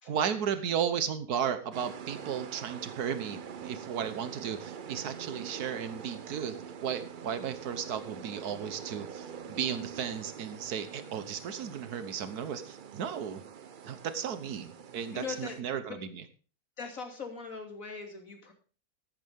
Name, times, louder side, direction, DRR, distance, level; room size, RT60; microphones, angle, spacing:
voice 1, 0.1-13.4 13.8-16.2, right 8 dB, 90° right, 11 dB, 1.6 m, -34 dB
sound 1, 1.7-15.6, right 7 dB, 50° right, 0.6 m, -45 dB
voice 2, 15.1-15.6 15.9-16.0 16.8-18.5, left 5 dB, 60° left, 4 dB, 3.1 m, -40 dB
14.0 x 12.0 x 3.6 m, 0.37 s
omnidirectional pair, 1.6 m